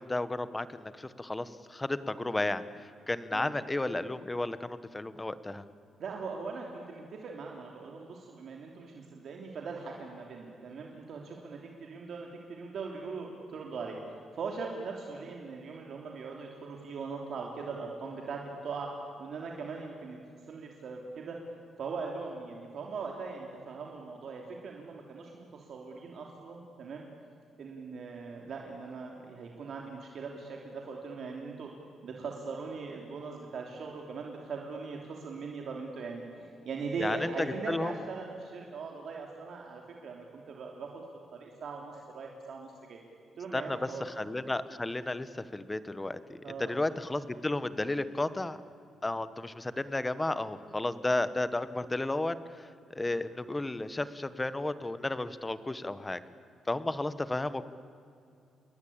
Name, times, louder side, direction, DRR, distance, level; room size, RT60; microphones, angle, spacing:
voice 1, 0.0-5.6 37.0-38.0 43.5-48.6 49.0-56.2 56.7-57.6, left 2 dB, 15° left, 13 dB, 1.1 m, -33 dB
voice 2, 6.0-18.9 19.2-20.2 20.5-21.4 21.8-27.1 27.6-31.7 32.0-41.0 41.3-43.0 43.4-44.0 46.4-46.8, right 4 dB, 55° right, 0 dB, 3.2 m, -40 dB
29.0 x 22.5 x 8.8 m, 2.5 s
cardioid pair, 145°, 0 cm